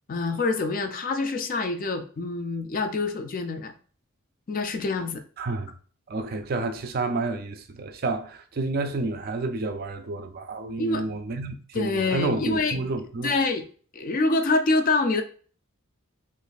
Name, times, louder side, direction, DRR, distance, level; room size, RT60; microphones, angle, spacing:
voice 1, 0.1-3.7 4.5-5.2 10.8-11.0 11.7-12.8 13.2-13.6 13.9-15.2, left 3 dB, 40° left, 0.4 m, -26 dB
voice 2, 5.4-5.7 6.1-13.4, right 3 dB, 45° right, 0.4 m, -30 dB
3.0 x 2.5 x 3.9 m
head